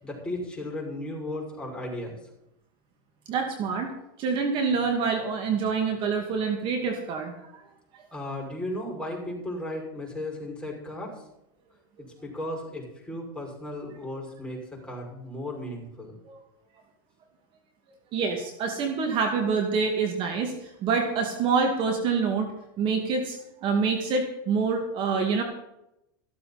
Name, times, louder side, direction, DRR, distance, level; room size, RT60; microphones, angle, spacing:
voice 1, 0.0-2.2 8.1-11.2 12.2-16.2, left 1 dB, 10° left, -2 dB, 6.3 m, -35 dB
voice 2, 3.3-3.9 4.2-7.6 16.3-16.4 18.1-22.5 22.8-25.4, right 5 dB, 45° right, 4 dB, 2.4 m, -26 dB
15.0 x 13.0 x 4.4 m, 0.84 s
supercardioid pair, 115°, 12 cm